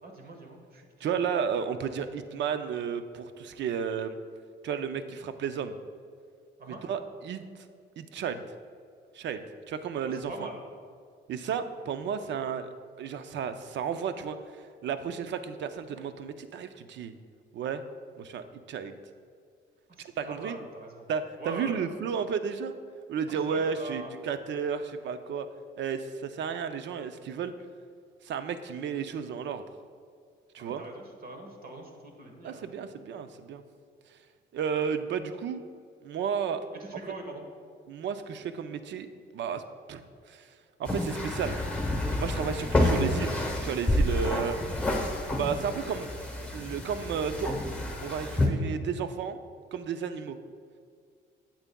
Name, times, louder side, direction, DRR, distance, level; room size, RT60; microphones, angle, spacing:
voice 1, 0.0-1.1 6.6-6.8 10.0-10.6 19.9-21.1 21.4-21.8 23.3-24.1 30.6-32.7 36.8-37.4 42.6-42.7, right 2 dB, 45° right, 3 dB, 1.2 m, -43 dB
voice 2, 1.0-4.2 4.6-5.7 6.8-7.7 8.0-8.4 9.1-10.3 11.3-12.7 13.0-17.1 17.5-17.8 18.2-18.9 20.0-20.6 21.1-22.7 23.1-25.5 25.8-27.5 28.2-29.6 30.5-30.8 32.4-33.6 34.5-35.6 36.0-36.6 37.9-39.6 39.9-40.0 40.3-40.5 40.8-41.6 42.2-44.6 45.3-46.1 46.5-47.6 48.0-49.4 49.7-50.4, right 7 dB, 65° right, 10 dB, 0.5 m, -33 dB
sound 1, 40.8-48.5, left 1 dB, 5° left, 1.1 m, -29 dB
8.7 x 7.2 x 2.3 m, 2.2 s
cardioid pair, 90°, 20 cm